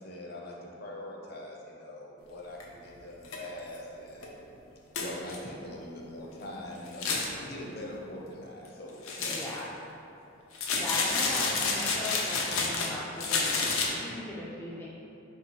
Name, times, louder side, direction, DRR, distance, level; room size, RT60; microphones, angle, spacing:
voice 1, 0.0-4.3 5.0-9.4, left 1 dB, 50° left, -2 dB, 0.7 m, -42 dB
sound 1, 2.6-2.7 3.2-3.4 3.7-3.8 4.2-4.3 4.9-5.4 6.9-7.3 9.1-9.6 10.5-12.9 13.2-13.9, left 4 dB, 90° left, 0.6 m, -29 dB
voice 2, 9.3-9.7 10.7-13.5 13.9-14.9, left 1 dB, 10° left, -7 dB, 0.3 m, -38 dB
4.5 x 2.7 x 4.4 m, 3.0 s
head